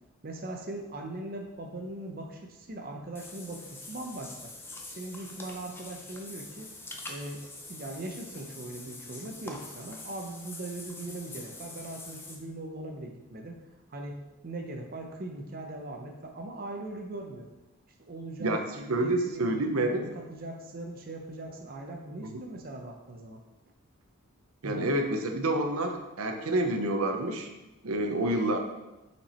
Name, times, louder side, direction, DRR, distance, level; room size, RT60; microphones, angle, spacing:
voice 1, 0.2-4.5 5.0-6.7 7.1-13.6 13.9-14.2 14.4-17.5 18.1-23.4 24.6-24.9, right 2 dB, 45° right, 2 dB, 0.6 m, -40 dB
Water / Bathtub (filling or washing), 3.2-12.4, left 2 dB, 10° left, 0.5 m, -45 dB
voice 2, 18.9-20.0 22.2-22.4 24.6-27.5 27.8-28.6, right 1 dB, 85° right, 4 dB, 0.7 m, -28 dB
5.8 x 4.5 x 4.2 m, 1.0 s
head